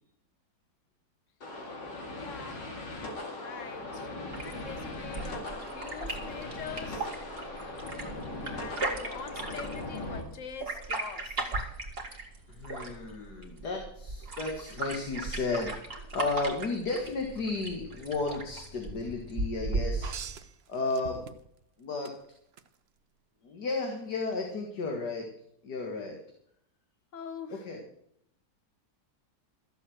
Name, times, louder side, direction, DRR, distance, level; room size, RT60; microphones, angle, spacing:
sound 1, 1.4-10.2, left 2 dB, 85° left, 3.0 m, -39 dB
voice 1, 2.2-2.7 3.1-4.1 4.4-7.1 8.5-11.5 27.1-27.7, left 7 dB, 50° left, 1.2 m, -44 dB
sound 2, 4.3-20.3, right 2 dB, 35° right, 2.0 m, -37 dB
voice 2, 12.5-20.2 20.7-21.2 21.8-22.1 23.4-25.3 25.6-26.2 27.5-27.8, left 3 dB, 65° left, 2.3 m, -33 dB
sound 3, 20.0-21.6 22.0-22.7 24.2-24.4, right 7 dB, 55° right, 0.7 m, -43 dB
13.5 x 7.3 x 7.8 m
omnidirectional pair, 1.9 m